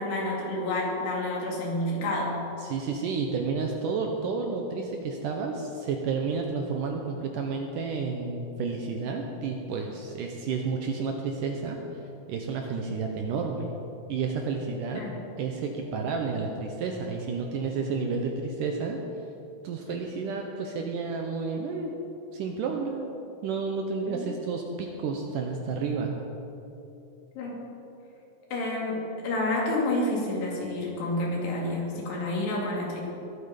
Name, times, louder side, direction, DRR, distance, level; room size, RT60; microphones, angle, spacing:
voice 1, 0.0-2.4 14.9-15.2 24.1-24.4 27.4-27.6 28.5-33.0, left 1 dB, 85° left, -2 dB, 4.6 m, -29 dB
voice 2, 2.6-11.8 12.3-13.8 14.1-15.0 15.4-19.0 19.6-21.9 22.3-26.2, right 4 dB, 75° right, 2 dB, 2.0 m, -31 dB
21.0 x 8.6 x 5.2 m, 2.9 s
omnidirectional pair, 4.6 m